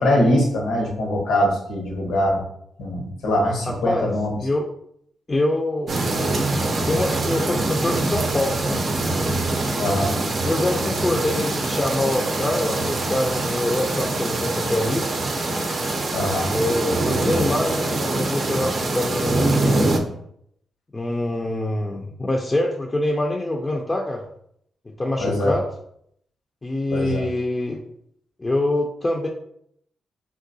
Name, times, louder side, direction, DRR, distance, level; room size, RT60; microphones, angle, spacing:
voice 1, 0.0-2.4 2.8-4.4 9.8-10.2 16.1-16.5 25.2-25.6 26.9-27.2, left 1 dB, 80° left, 0 dB, 0.9 m, -22 dB
voice 2, 3.7-4.1 4.4-4.7 5.3-6.0 6.9-8.8 10.4-15.1 16.5-20.1 20.9-24.2 25.0-25.7 26.6-27.8 28.4-29.3, left 1 dB, 30° left, -1 dB, 0.5 m, -25 dB
sound 1, 5.9-20.0, right 2 dB, 55° right, 0.5 m, -24 dB
3.7 x 2.3 x 2.6 m, 0.70 s
supercardioid pair, 50°, 0 cm